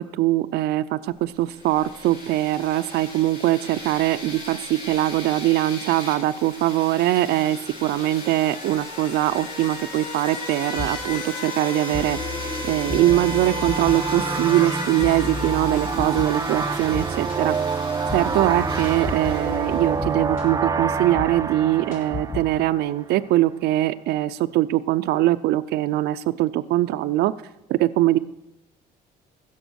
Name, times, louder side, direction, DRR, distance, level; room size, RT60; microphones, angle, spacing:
voice 1, 0.0-12.2 12.6-17.6 18.1-27.3 27.7-28.2, right 15 dB, 75° right, 12 dB, 0.5 m, -22 dB
sound 1, 1.4-20.1, left 2 dB, 85° left, 6.3 m, -36 dB
sound 2, 10.5-22.8, left 3 dB, 55° left, 4.8 m, -34 dB
sound 3, 12.8-23.2, right 5 dB, 20° right, 0.5 m, -28 dB
15.0 x 7.2 x 6.3 m, 0.86 s
cardioid pair, 110°, 17 cm